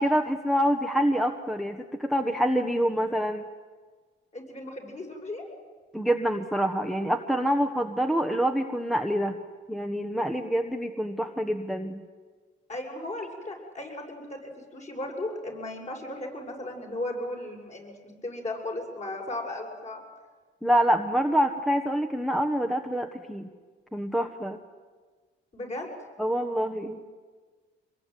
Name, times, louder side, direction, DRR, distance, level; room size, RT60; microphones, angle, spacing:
voice 1, 0.0-3.5 5.9-9.4 9.7-12.0 20.6-23.5 23.9-24.6 26.2-27.0, equal, ahead, 4 dB, 1.4 m, -26 dB
voice 2, 4.3-5.4 12.7-18.0 18.2-20.0 25.5-25.9, left 1 dB, 35° left, 1 dB, 7.5 m, -36 dB
25.0 x 21.5 x 9.5 m, 1.5 s
cardioid pair, 90°, 20 cm